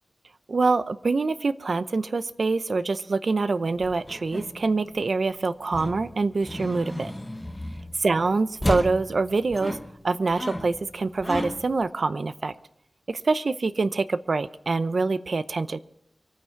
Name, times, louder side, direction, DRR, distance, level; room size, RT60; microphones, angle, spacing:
voice 1, 0.5-7.1 8.0-9.8 10.0-12.5 13.1-15.8, right 3 dB, 65° right, 12 dB, 0.7 m, -25 dB
sound 1, 3.7-5.2 5.7-8.2 8.6-11.8, left 1 dB, 10° left, 1.2 m, -34 dB
24.5 x 9.4 x 4.6 m, 0.81 s
wide cardioid pair, 85°, 0 cm